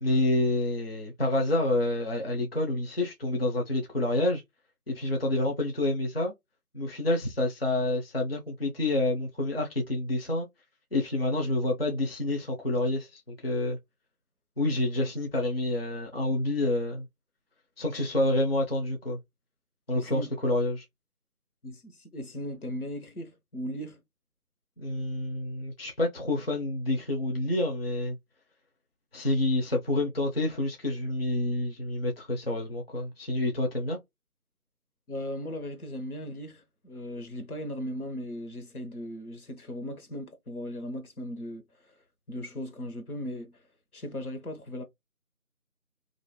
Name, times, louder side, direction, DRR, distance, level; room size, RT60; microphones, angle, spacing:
voice 1, 0.0-4.4 4.9-6.3 6.7-10.5 10.9-13.8 14.6-17.1 17.8-19.2 19.9-20.9 24.8-28.2 29.1-34.0, left 2 dB, 45° left, 0.5 m, -28 dB
voice 2, 19.9-20.3 21.6-24.0 35.1-42.0 42.3-43.5 43.9-44.8, equal, 75° left, 0.9 m, -37 dB
2.5 x 2.0 x 2.9 m
figure-of-eight pair, 160°, 44 cm